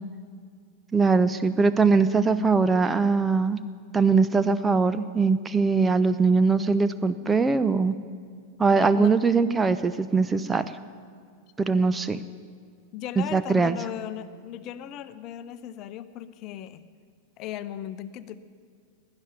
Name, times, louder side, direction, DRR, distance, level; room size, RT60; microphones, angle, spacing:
voice 1, 0.9-3.6 3.9-7.9 8.6-10.7 11.6-12.2 13.2-13.8, right 4 dB, 15° right, 12 dB, 0.5 m, -21 dB
voice 2, 12.9-16.9 17.4-18.4, left 11 dB, 40° left, 13 dB, 0.7 m, -37 dB
13.0 x 9.8 x 9.3 m, 2.1 s
figure-of-eight pair, 90°, 0 cm